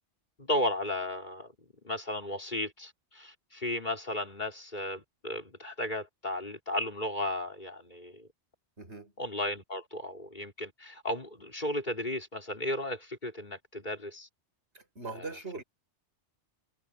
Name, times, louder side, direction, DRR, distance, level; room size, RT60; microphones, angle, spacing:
voice 1, 0.4-1.5 1.8-8.3 9.2-14.3 15.2-15.3, left 1 dB, 40° left, 3.8 m, -34 dB
voice 2, 8.8-9.1 14.7-15.6, right 4 dB, 75° right, 5.5 m, -41 dB
omnidirectional pair, 1.2 m